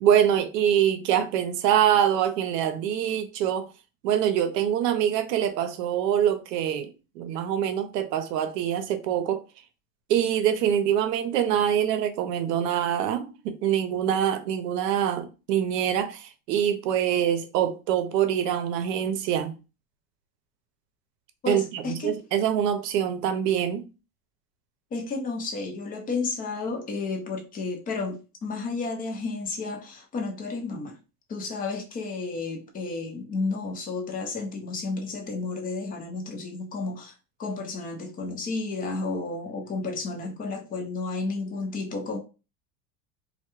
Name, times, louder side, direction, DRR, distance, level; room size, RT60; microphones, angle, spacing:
voice 1, 0.0-3.7 4.0-9.4 10.1-19.5 21.5-23.9, right 9 dB, 85° right, 0.7 m, -24 dB
voice 2, 21.4-22.1 24.9-31.0 31.3-37.1 37.4-42.2, left 3 dB, 20° left, 0.4 m, -32 dB
2.2 x 2.2 x 2.9 m
supercardioid pair, 120°, 48 cm